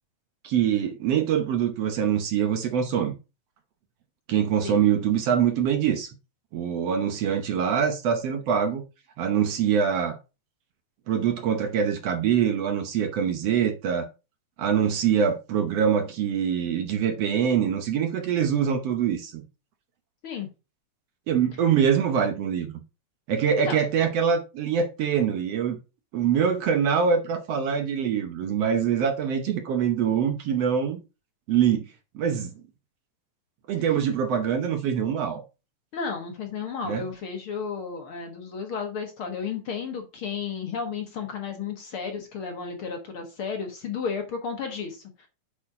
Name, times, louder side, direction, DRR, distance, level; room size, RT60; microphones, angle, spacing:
voice 1, 0.4-3.2 4.3-6.1 6.5-8.8 9.2-10.2 11.1-14.1 14.6-19.4 21.3-22.8 23.3-25.8 26.1-31.0 31.5-31.9 32.2-32.5 33.7-35.4 36.9-37.0, right 8 dB, 65° right, 1.8 m, -24 dB
voice 2, 35.9-45.3, left 6 dB, 55° left, 1.9 m, -33 dB
8.5 x 4.3 x 4.8 m
omnidirectional pair, 3.3 m